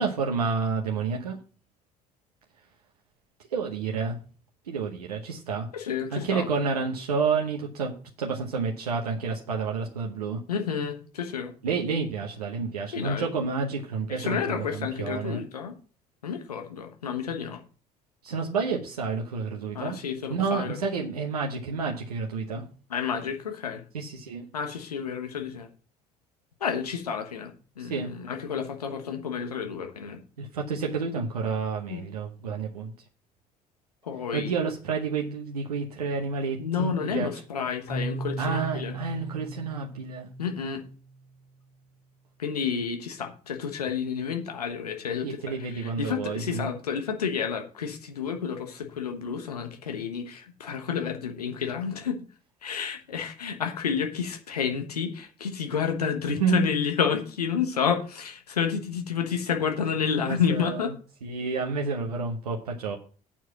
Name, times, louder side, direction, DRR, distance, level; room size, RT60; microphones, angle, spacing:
voice 1, 0.0-1.4 3.5-4.2 4.6-5.7 6.1-10.4 11.6-15.4 18.2-20.0 20.3-22.7 23.9-24.5 27.8-28.1 30.4-32.9 34.3-37.3 38.4-40.3 45.2-46.7 56.3-56.6 60.2-60.9 61.2-63.0, right 5 dB, 85° right, 0 dB, 1.0 m, -29 dB
voice 2, 5.7-6.5 10.5-11.5 12.9-13.3 14.1-15.7 16.2-17.6 19.7-20.8 22.9-23.8 24.5-25.7 26.6-30.2 31.9-32.0 34.0-34.5 36.6-38.9 40.4-40.8 42.4-52.2 52.6-60.9, left 7 dB, 85° left, 5 dB, 1.1 m, -30 dB
Keyboard (musical), 37.9-41.6, right 2 dB, 65° left, 6.0 m, -37 dB
8.8 x 4.6 x 7.3 m, 0.39 s
figure-of-eight pair, 50°, 19 cm